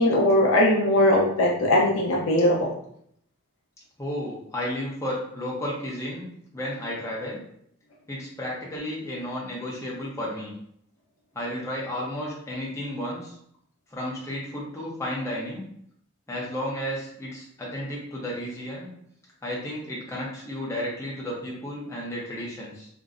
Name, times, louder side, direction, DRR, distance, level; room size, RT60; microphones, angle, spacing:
voice 1, 0.0-2.7, left 1 dB, 70° left, -3 dB, 0.5 m, -20 dB
voice 2, 4.0-6.3 6.5-7.4 8.1-10.5 11.3-13.4 13.9-15.6 16.3-18.9 19.4-22.9, left 1 dB, 15° left, -5 dB, 0.5 m, -32 dB
2.6 x 2.0 x 2.4 m, 0.69 s
head